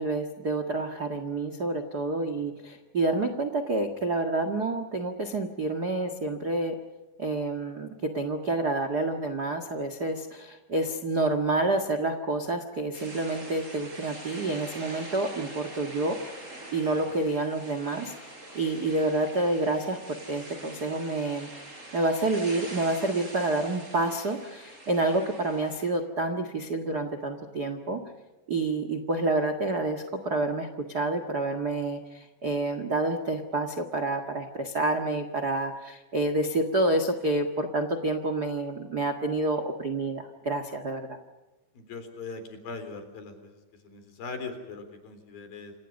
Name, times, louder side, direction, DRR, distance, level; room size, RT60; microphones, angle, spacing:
voice 1, 0.0-6.7 7.2-16.2 16.7-18.1 18.5-21.5 21.9-28.0 28.5-41.2, right 2 dB, 70° right, 8 dB, 0.9 m, -28 dB
sound 1, 12.9-25.9, right 1 dB, 15° right, 4.8 m, -44 dB
voice 2, 41.7-45.7, left 4 dB, 55° left, 7 dB, 5.4 m, -41 dB
28.5 x 27.5 x 5.4 m, 1.1 s
omnidirectional pair, 5.0 m